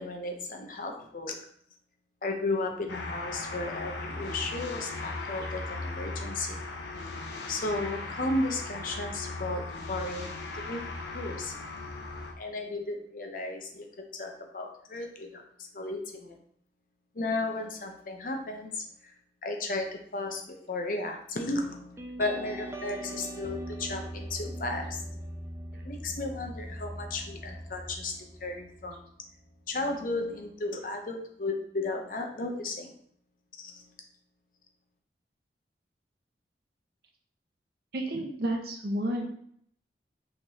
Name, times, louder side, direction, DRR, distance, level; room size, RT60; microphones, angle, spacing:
voice 1, 0.0-1.4 2.2-6.6 7.5-10.8 11.1-11.5 12.4-16.4 17.1-19.1 19.4-25.3 25.8-29.1 29.7-33.0 33.6-33.9, left 2 dB, 50° left, 3 dB, 0.7 m, -34 dB
sound 1, 2.9-12.3, left 3 dB, 85° left, 0.7 m, -38 dB
sound 2, 22.0-29.1, equal, 15° right, 0.4 m, -41 dB
voice 2, 37.9-39.3, right 1 dB, 60° right, 3 dB, 0.8 m, -31 dB
5.7 x 3.4 x 2.8 m, 0.65 s
head